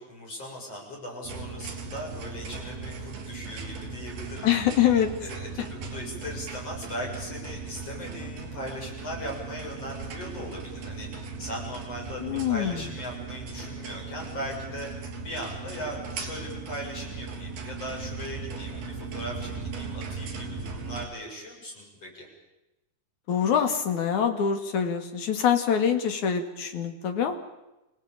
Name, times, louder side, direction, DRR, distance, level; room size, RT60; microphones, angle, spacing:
voice 1, 0.0-4.5 5.2-14.9 15.2-22.3, equal, 40° left, -1 dB, 7.7 m, -39 dB
sound 1, 1.2-21.0, right 4 dB, 75° right, 5.1 m, -38 dB
voice 2, 4.4-5.1 12.2-12.9 23.3-27.4, left 8 dB, 55° left, 7 dB, 3.3 m, -25 dB
29.0 x 18.0 x 8.8 m, 0.99 s
omnidirectional pair, 4.3 m